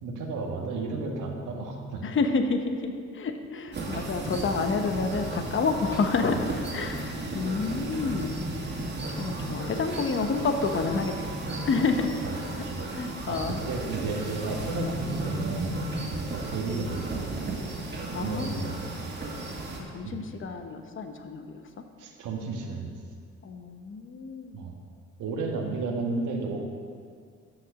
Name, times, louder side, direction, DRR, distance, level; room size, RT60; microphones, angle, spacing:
voice 1, 0.0-2.0 6.2-6.3 7.2-7.3 12.2-12.3 12.6-12.8 13.3-15.7 16.3-17.2 18.1-18.9 20.0-20.2 22.0-22.9 24.5-24.8 25.2-26.6, right 3 dB, 85° right, 1 dB, 1.5 m, -33 dB
voice 2, 2.0-6.5 6.7-8.8 9.2-12.2 12.5-12.6 12.9-13.6 15.9-16.0 18.1-18.8 19.9-21.6 23.4-24.6, left 4 dB, 40° left, 6 dB, 0.9 m, -29 dB
sound 1, 3.7-19.8, right 2 dB, 35° right, 2.4 m, -34 dB
11.0 x 5.8 x 6.6 m, 2.1 s
cardioid pair, 90°, 30 cm